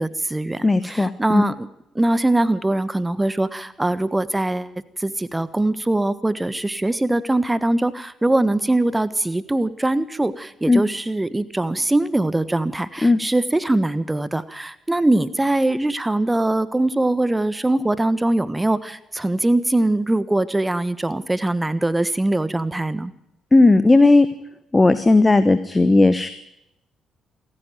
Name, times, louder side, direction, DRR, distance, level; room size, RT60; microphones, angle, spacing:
voice 1, 0.0-1.7 1.9-4.7 5.0-23.1, right 2 dB, 15° right, 16 dB, 1.4 m, -22 dB
voice 2, 0.6-1.5 10.7-10.8 13.0-13.2 23.5-24.3 24.7-26.3, left 2 dB, 20° left, 12 dB, 1.2 m, -15 dB
27.0 x 10.5 x 9.3 m, 0.86 s
figure-of-eight pair, 40°, 0 cm